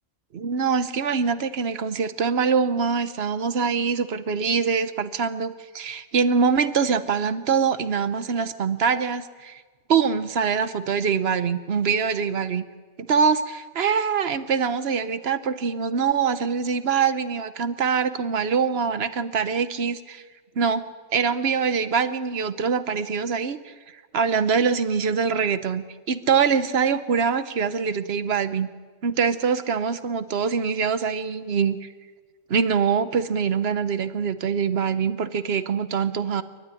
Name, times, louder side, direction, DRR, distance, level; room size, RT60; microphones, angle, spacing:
voice 1, 0.3-9.6 9.9-12.6 13.0-20.2 20.6-20.8 21.1-23.7 24.1-28.7 29.0-31.9 32.5-36.4, right 6 dB, 50° right, 12 dB, 1.1 m, -24 dB
30.0 x 13.0 x 9.8 m, 1.4 s
omnidirectional pair, 1.5 m